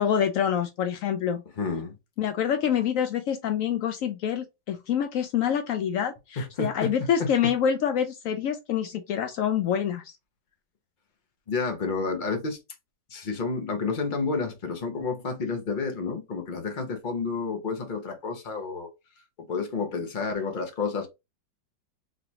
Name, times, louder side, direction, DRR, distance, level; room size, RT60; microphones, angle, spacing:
voice 1, 0.0-1.4 2.2-10.1, left 8 dB, 85° left, 0.7 m, -26 dB
voice 2, 1.6-1.9 6.4-7.5 11.5-12.6 13.1-18.9 19.4-21.1, left 4 dB, 40° left, 0.8 m, -30 dB
4.1 x 3.3 x 2.9 m
omnidirectional pair, 1.9 m